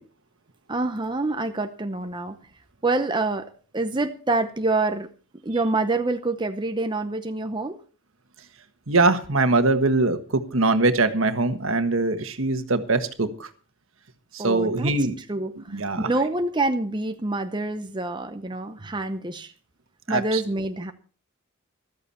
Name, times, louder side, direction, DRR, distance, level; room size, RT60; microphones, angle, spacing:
voice 1, 0.7-2.3 2.8-3.5 3.7-5.1 5.4-7.8 14.4-14.9 15.3-19.5 20.1-20.9, right 2 dB, 20° right, 7 dB, 0.8 m, -26 dB
voice 2, 8.9-13.5 14.3-15.2 15.7-16.1 20.1-20.4, right 3 dB, 70° right, 8 dB, 1.5 m, -22 dB
14.0 x 13.5 x 4.4 m, 0.39 s
head